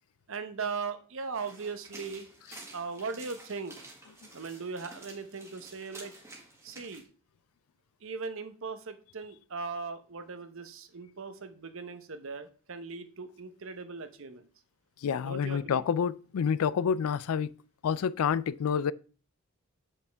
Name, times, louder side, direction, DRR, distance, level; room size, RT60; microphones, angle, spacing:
voice 1, 0.3-2.3 2.7-3.7 4.3-6.1 6.6-7.1 8.0-14.5 15.2-15.8, right 4 dB, 60° right, 0.8 m, -39 dB
sound 1, 1.4-7.0, right 2 dB, 15° right, 1.5 m, -50 dB
voice 2, 15.0-17.5 17.8-18.9, left 7 dB, 75° left, 0.4 m, -28 dB
8.4 x 5.4 x 3.4 m
head